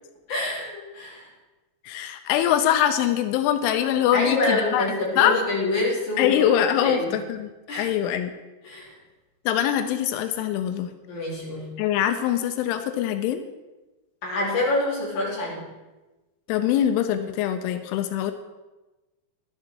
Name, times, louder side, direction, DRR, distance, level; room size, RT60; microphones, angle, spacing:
voice 1, 0.3-1.3 4.1-6.5 6.8-7.2 7.7-7.9 8.6-8.9 11.1-11.7 14.2-15.6, left 2 dB, 40° left, -5 dB, 4.2 m, -26 dB
voice 2, 1.8-4.9 5.2-5.5 6.2-8.3 9.5-10.9 11.8-13.4 16.5-18.3, left 10 dB, 90° left, 8 dB, 3.1 m, -23 dB
11.5 x 10.5 x 4.5 m, 1.1 s
omnidirectional pair, 5.4 m